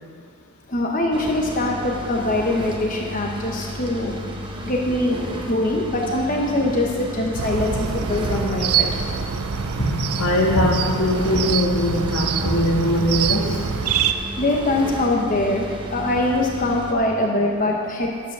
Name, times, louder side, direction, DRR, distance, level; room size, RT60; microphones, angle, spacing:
voice 1, 0.7-4.1 4.6-5.2 5.4-8.9 14.4-18.1, left 1 dB, 35° left, 0 dB, 0.9 m, -23 dB
sound 1, 1.1-16.9, equal, 20° right, 1.0 m, -33 dB
sound 2, 7.3-14.1, right 7 dB, 85° right, 0.5 m, -25 dB
voice 2, 10.2-13.6, left 1 dB, 80° left, 0 dB, 1.6 m, -21 dB
10.0 x 8.4 x 6.1 m, 2.2 s
head